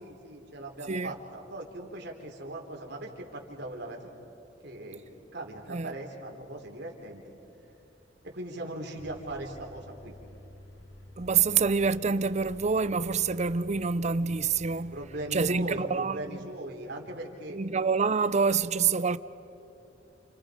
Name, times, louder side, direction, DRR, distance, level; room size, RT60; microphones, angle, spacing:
voice 1, 0.0-4.1 4.6-5.0 5.3-7.4 8.2-10.1 14.9-17.6, right 1 dB, 65° right, 3.4 m, -39 dB
sound 1, 9.0-15.8, left 1 dB, 85° left, 2.6 m, -50 dB
voice 2, 11.2-15.0 15.3-16.2 17.5-19.2, right 5 dB, 40° right, 0.6 m, -26 dB
29.5 x 29.0 x 5.1 m
head